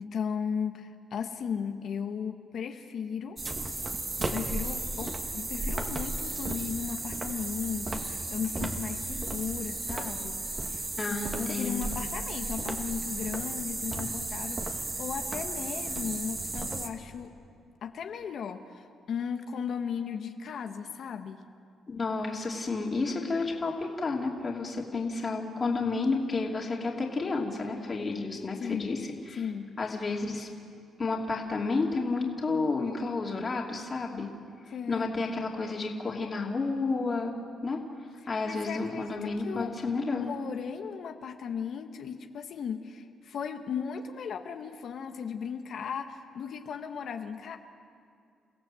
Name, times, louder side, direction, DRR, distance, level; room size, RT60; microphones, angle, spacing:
voice 1, 0.0-3.4 4.3-10.8 11.4-17.3 17.8-21.4 28.6-29.0 29.4-29.7 34.7-35.2 38.4-39.7 40.1-47.6, left 7 dB, 65° left, 5 dB, 1.3 m, -36 dB
sound 1, 3.4-16.9, right 2 dB, 30° right, 2.1 m, -34 dB
voice 2, 11.0-11.9 21.9-29.5 29.8-30.5 31.0-34.3 34.9-37.3 37.6-40.3, left 3 dB, 35° left, -1 dB, 2.8 m, -31 dB
30.0 x 16.0 x 7.7 m, 2.3 s
cardioid pair, 90°, 0 cm